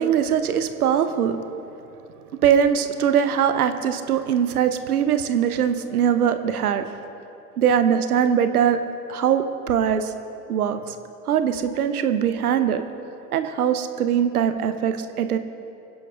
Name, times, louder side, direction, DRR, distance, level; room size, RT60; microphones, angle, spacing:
voice 1, 0.0-1.4 2.4-6.9 7.6-8.8 9.1-10.1 10.5-10.9 11.3-12.9 13.3-15.4, right 8 dB, 70° right, 10 dB, 0.8 m, -21 dB
25.5 x 10.5 x 2.4 m, 2.9 s
figure-of-eight pair, 80°, 46 cm